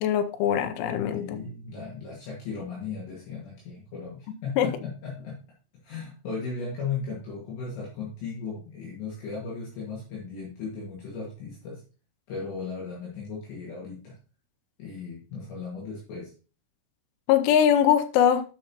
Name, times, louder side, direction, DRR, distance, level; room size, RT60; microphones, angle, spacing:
voice 1, 0.0-1.2 4.6-4.7 17.3-18.4, left 9 dB, 80° left, 9 dB, 3.1 m, -21 dB
voice 2, 1.1-5.4 5.8-11.8 12.3-14.2 14.8-16.3, left 5 dB, 65° left, -5 dB, 3.9 m, -36 dB
12.5 x 5.7 x 2.9 m, 0.35 s
omnidirectional pair, 5.7 m